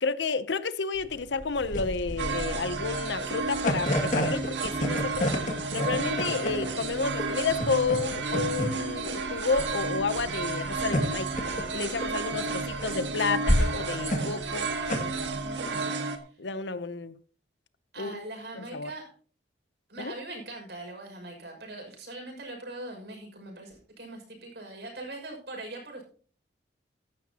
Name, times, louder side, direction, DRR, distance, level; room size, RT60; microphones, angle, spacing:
voice 1, 0.0-5.4 5.7-11.3 11.7-14.7 16.4-17.1 18.0-18.2 18.6-18.9 20.0-20.1, left 4 dB, 80° left, 0.8 m, -31 dB
sound 1, 1.0-15.7, equal, 45° left, 2.2 m, -31 dB
sound 2, 2.2-16.2, right 4 dB, 90° right, 1.8 m, -32 dB
voice 2, 12.4-13.5 15.2-15.9 16.2-16.4 17.9-19.1 19.9-26.0, right 2 dB, 65° right, 6.1 m, -42 dB
15.5 x 12.0 x 2.9 m
head